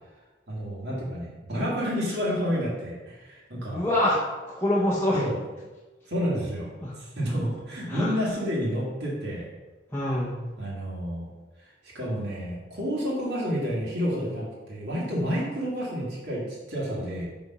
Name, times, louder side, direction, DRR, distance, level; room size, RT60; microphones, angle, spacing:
voice 1, 0.5-3.8 5.1-5.4 6.1-6.7 7.0-9.5 10.6-11.3 11.6-17.3, equal, 65° right, -6 dB, 1.8 m, -30 dB
voice 2, 3.7-5.2 6.8-7.0 7.9-8.2 9.9-10.4, left 1 dB, 10° left, -7 dB, 0.7 m, -25 dB
5.0 x 4.1 x 5.4 m, 1.2 s
head